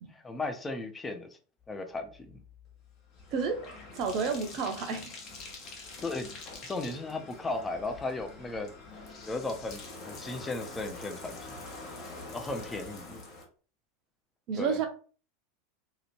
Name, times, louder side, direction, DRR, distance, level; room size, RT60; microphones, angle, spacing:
voice 1, 0.2-1.3 1.7-2.4 6.0-6.3 6.7-8.7 9.2-11.6 12.3-13.2 14.6-14.8, left 2 dB, 15° left, 5 dB, 0.5 m, -36 dB
Bathtub (filling or washing), 2.1-13.4, left 3 dB, 40° left, 0.8 m, -45 dB
voice 2, 3.3-3.6 3.9-5.0 14.5-14.9, right 5 dB, 45° right, 5 dB, 0.6 m, -30 dB
2.8 x 2.4 x 2.9 m, 0.39 s
figure-of-eight pair, 80°, 0 cm